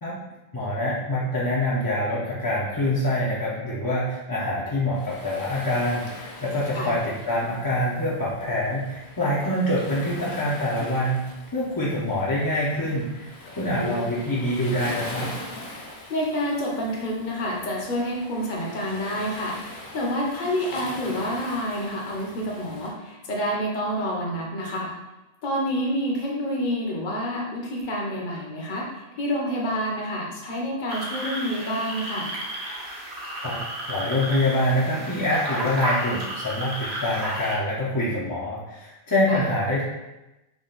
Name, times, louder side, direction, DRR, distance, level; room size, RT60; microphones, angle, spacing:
voice 1, 0.5-11.2 11.5-15.3 33.4-33.6 33.9-39.8, left 1 dB, 30° left, -7 dB, 0.4 m, -25 dB
Waves surf, 4.9-22.9, left 2 dB, 80° left, 1.0 m, -41 dB
voice 2, 13.6-14.1 16.1-24.9 25.4-32.3 39.3-39.4, equal, 50° left, -2 dB, 0.9 m, -28 dB
sound 1, 30.9-37.5, right 1 dB, 75° right, 1.2 m, -32 dB
3.6 x 2.3 x 3.8 m, 0.99 s
omnidirectional pair, 1.1 m